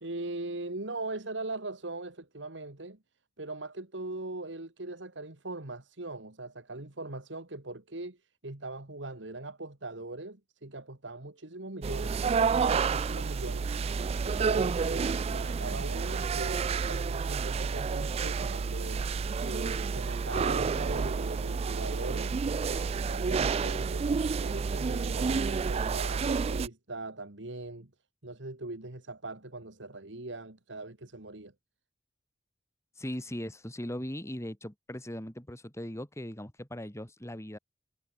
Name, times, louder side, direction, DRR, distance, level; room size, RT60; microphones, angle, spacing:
voice 1, 0.0-3.0 3.4-8.2 8.4-12.2 12.7-13.7 14.2-19.1 19.5-22.4 22.7-24.1 24.4-27.9 28.2-31.5, right 2 dB, 80° right, 2.3 m, -40 dB
sound 1, 11.8-26.7, right 5 dB, 35° right, 0.3 m, -30 dB
voice 2, 33.0-37.6, left 1 dB, 15° left, 2.5 m, -39 dB
head